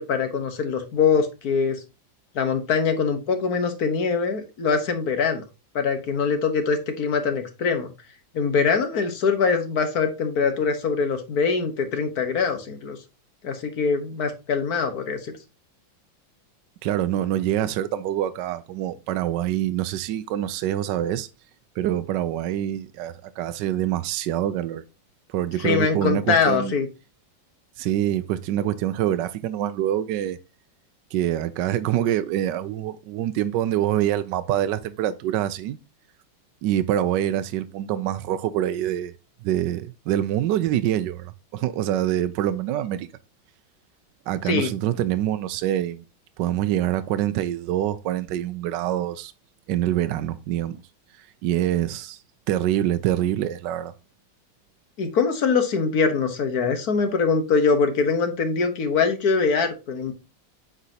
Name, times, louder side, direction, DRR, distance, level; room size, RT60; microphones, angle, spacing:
voice 1, 0.0-1.8 2.3-5.4 5.7-7.9 8.3-13.0 13.4-15.3 25.6-26.9 44.4-44.7 55.0-60.1, left 5 dB, 55° left, 1.5 m, -23 dB
voice 2, 16.8-21.3 21.8-24.8 25.3-26.7 27.8-30.4 31.1-35.8 36.6-39.1 39.4-43.1 44.3-46.0 46.4-49.3 49.7-50.8 51.2-52.2 52.5-53.9, right 12 dB, 75° right, 1.1 m, -25 dB
8.2 x 5.1 x 2.8 m
omnidirectional pair, 2.1 m